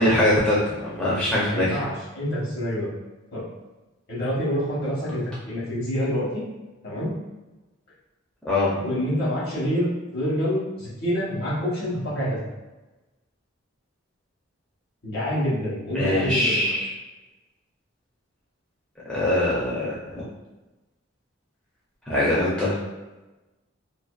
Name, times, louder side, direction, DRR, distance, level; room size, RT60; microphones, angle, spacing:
voice 1, 0.0-1.8 8.4-8.7 15.9-16.9 19.1-19.9 22.1-22.7, left 1 dB, 5° left, -9 dB, 0.4 m, -22 dB
voice 2, 1.4-2.9 3.3-3.4 4.1-6.4 6.8-7.1 8.8-12.4 15.0-16.7, equal, 55° left, -8 dB, 1.0 m, -27 dB
2.5 x 2.4 x 2.3 m, 1.1 s
head